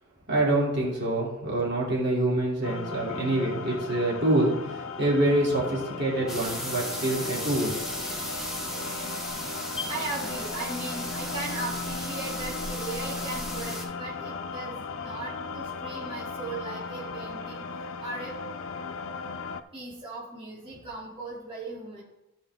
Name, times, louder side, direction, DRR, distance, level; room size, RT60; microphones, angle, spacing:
voice 1, 0.3-7.8, right 1 dB, 50° right, -5 dB, 3.1 m, -26 dB
sound 1, 2.6-19.6, left 4 dB, 70° left, 0.6 m, -37 dB
sound 2, 6.3-13.8, equal, 5° right, 2.1 m, -36 dB
voice 2, 9.9-17.6 18.0-18.4 19.7-22.0, right 3 dB, 25° right, -8 dB, 2.6 m, -37 dB
15.0 x 5.1 x 3.7 m, 0.97 s
head